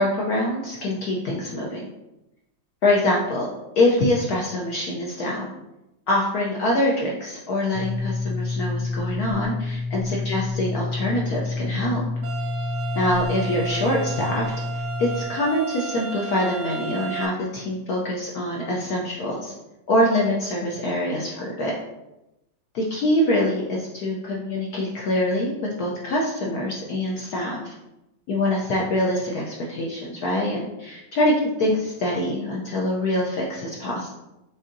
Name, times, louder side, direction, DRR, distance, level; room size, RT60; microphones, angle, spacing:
voice 1, 0.0-1.9 2.8-3.5 3.8-5.5 6.1-12.1 12.9-14.5 14.7-19.5 19.9-21.7 22.7-27.7 28.3-31.3 31.6-34.1, left 1 dB, 70° left, -3 dB, 0.9 m, -24 dB
sound 1, 7.7-15.2, left 3 dB, 85° left, 1.7 m, -28 dB
sound 2, 12.2-17.3, right 9 dB, 85° right, 1.6 m, -34 dB
7.3 x 2.6 x 2.6 m, 0.95 s
omnidirectional pair, 2.2 m